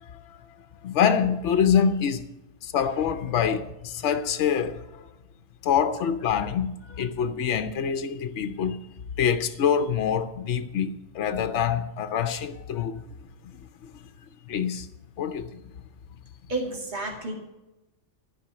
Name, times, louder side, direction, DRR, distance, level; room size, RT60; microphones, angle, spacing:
voice 1, 0.0-0.4 0.8-2.2 2.6-5.1 5.6-8.8 9.2-13.0 14.5-14.9 15.2-15.6, left 7 dB, 75° left, 1.0 m, -25 dB
voice 2, 16.5-17.3, right 2 dB, 40° right, 2.3 m, -31 dB
13.5 x 5.6 x 7.9 m
omnidirectional pair, 1.2 m